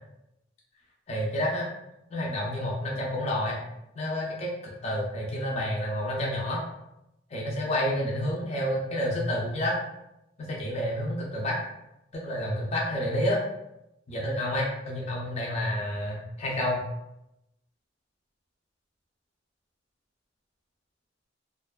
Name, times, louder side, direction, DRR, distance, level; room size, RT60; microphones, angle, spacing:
voice 1, 1.1-1.7 2.1-3.6 4.0-4.5 4.8-6.6 7.3-9.8 10.4-11.6 12.1-13.4 14.1-16.8, left 1 dB, 35° left, -3 dB, 0.4 m, -29 dB
2.5 x 2.2 x 2.2 m, 0.88 s
head